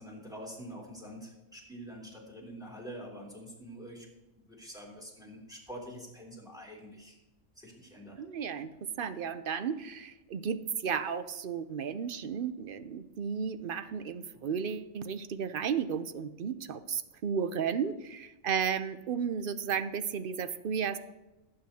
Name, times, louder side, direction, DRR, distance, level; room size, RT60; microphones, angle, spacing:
voice 1, 0.0-4.1 4.5-7.2 7.5-8.2, equal, 5° right, -2 dB, 3.5 m, -46 dB
voice 2, 8.2-8.7 9.0-21.0, right 7 dB, 55° right, 12 dB, 0.7 m, -33 dB
18.0 x 8.8 x 2.8 m, 1.0 s
omnidirectional pair, 1.3 m